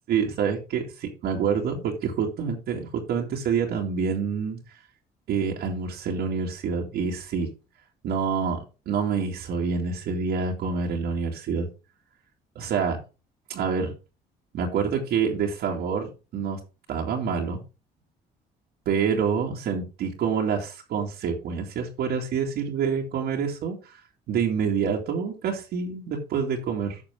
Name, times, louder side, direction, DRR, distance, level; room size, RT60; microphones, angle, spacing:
voice 1, 0.1-4.6 5.3-7.5 8.0-11.7 12.6-13.0 13.5-13.9 14.5-16.6 16.9-17.6 18.9-24.0 24.3-27.0, right 6 dB, 70° right, -1 dB, 2.4 m, -27 dB
11.5 x 6.7 x 3.7 m, 0.31 s
cardioid pair, 110°, 17 cm